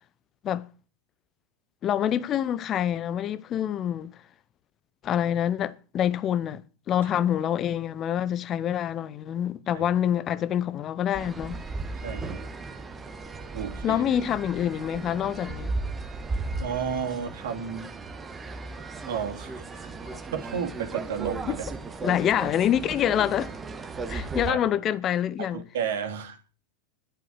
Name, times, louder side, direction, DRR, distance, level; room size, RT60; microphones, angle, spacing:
voice 1, 1.8-4.1 5.0-11.6 13.8-15.7 20.1-20.2 21.5-21.6 22.0-23.5 24.1-25.6, left 10 dB, 30° left, 0.9 m, -26 dB
sound 1, 11.1-24.5, right 3 dB, 15° right, 1.4 m, -36 dB
voice 2, 12.0-12.4 13.5-14.0 16.6-17.9 19.1-19.9 20.3-21.7 24.5-24.6 25.4-26.4, right 7 dB, 55° right, 2.5 m, -32 dB
11.5 x 7.7 x 8.3 m
figure-of-eight pair, 90°, 0 cm